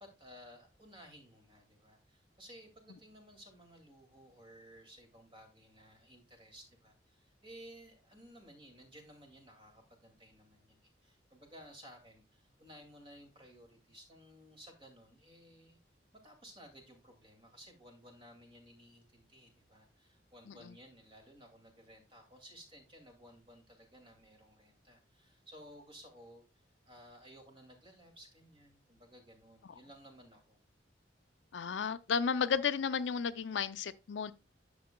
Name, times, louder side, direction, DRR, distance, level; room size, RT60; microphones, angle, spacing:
voice 1, 0.0-15.8 16.2-26.4 26.9-30.6, equal, 30° right, 2.4 m, -57 dB
voice 2, 31.5-34.3, left 6 dB, 75° left, 0.5 m, -33 dB
10.0 x 6.9 x 2.3 m
head